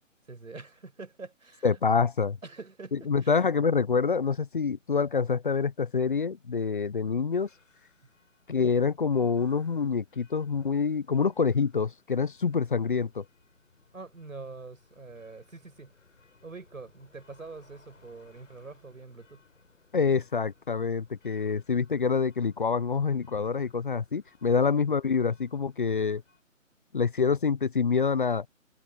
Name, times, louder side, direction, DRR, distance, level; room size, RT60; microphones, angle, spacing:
voice 1, 0.3-1.7 2.4-3.4 13.9-15.9 16.4-19.4 24.6-24.7, right 3 dB, 85° right, 5.4 m, -45 dB
voice 2, 1.6-2.4 2.9-7.5 8.5-13.2 19.9-26.2 26.9-28.5, left 5 dB, 40° left, 0.8 m, -26 dB
sound 1, 7.3-26.4, left 4 dB, 70° left, 7.8 m, -63 dB
figure-of-eight pair, 160°, 40 cm